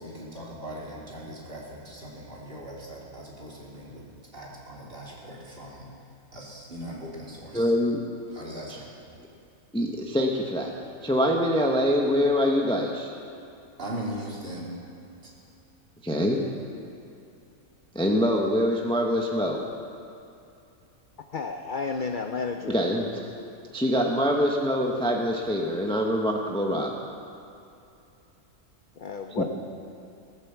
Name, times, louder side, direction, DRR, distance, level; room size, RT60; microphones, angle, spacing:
voice 1, 0.0-4.1 4.3-5.9 6.3-7.7 8.3-8.9 13.8-14.8 15.2-15.3, right 1 dB, 40° right, -5 dB, 3.2 m, -39 dB
voice 2, 7.5-8.0 9.7-10.7 11.0-13.1 16.0-16.4 17.9-19.6 22.7-23.3 23.7-27.0 29.4-29.5, equal, 5° left, 0 dB, 1.0 m, -24 dB
voice 3, 21.3-22.8 29.0-29.4, left 5 dB, 50° left, 5 dB, 0.6 m, -31 dB
18.5 x 9.1 x 7.2 m, 2.7 s
omnidirectional pair, 1.5 m